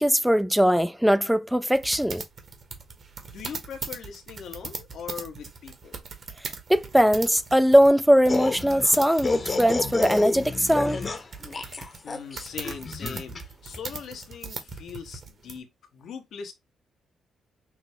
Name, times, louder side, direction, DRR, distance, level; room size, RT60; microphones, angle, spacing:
voice 1, 0.0-2.2 6.7-11.0, equal, 5° right, 0.4 m, -20 dB
sound 1, 1.7-15.6, right 5 dB, 50° right, 1.3 m, -39 dB
voice 2, 3.3-6.0 12.0-16.5, left 7 dB, 75° left, 1.0 m, -40 dB
sound 2, 8.3-13.4, left 3 dB, 35° left, 0.9 m, -30 dB
6.0 x 2.1 x 3.4 m
cardioid pair, 85°, 0 cm